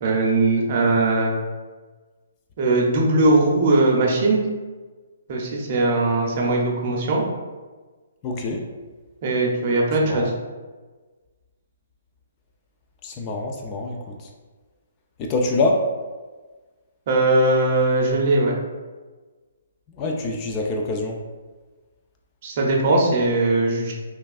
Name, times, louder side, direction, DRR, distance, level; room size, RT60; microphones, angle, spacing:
voice 1, 0.0-1.3 2.6-4.4 5.3-7.2 9.2-10.3 17.1-18.5 22.4-23.9, right 2 dB, 45° right, -1 dB, 0.6 m, -20 dB
voice 2, 8.2-8.6 10.0-10.3 13.0-14.3 15.2-15.9 19.9-21.2, left 2 dB, 30° left, 1 dB, 0.3 m, -25 dB
3.2 x 2.3 x 2.3 m, 1.3 s
hypercardioid pair, 145°, 0 cm